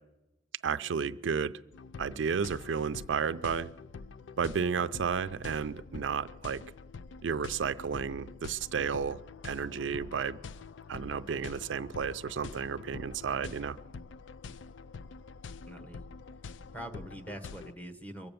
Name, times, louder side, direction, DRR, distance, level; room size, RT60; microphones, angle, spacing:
voice 1, 0.6-1.5 2.0-3.7 4.4-6.6 7.2-10.4 10.9-13.8, right 6 dB, 85° right, 13 dB, 0.4 m, -32 dB
sound 1, 1.7-17.7, left 5 dB, 85° left, 0.4 m, -46 dB
voice 2, 15.7-16.0 16.7-18.3, right 1 dB, 10° left, 9 dB, 1.0 m, -43 dB
23.0 x 7.8 x 6.9 m, 1.0 s
head